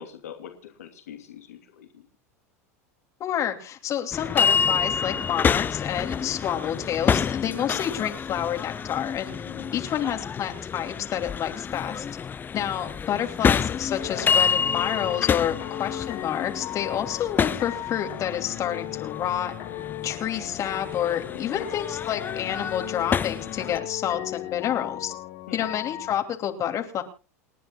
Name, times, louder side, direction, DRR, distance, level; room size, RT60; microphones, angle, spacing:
voice 1, 0.0-2.0 9.4-9.8 21.3-21.7 25.5-25.6, left 9 dB, 80° left, 4 dB, 2.9 m, -43 dB
voice 2, 3.2-9.3 9.7-12.1 12.5-19.5 20.0-25.1 25.5-27.0, left 10 dB, 40° left, 4 dB, 2.9 m, -29 dB
sound 1, 4.1-23.8, left 6 dB, 25° left, 0.6 m, -28 dB
sound 2, 14.0-26.2, left 14 dB, 60° left, 2.6 m, -37 dB
29.5 x 10.0 x 2.4 m, 0.32 s
hypercardioid pair, 90°, 8 cm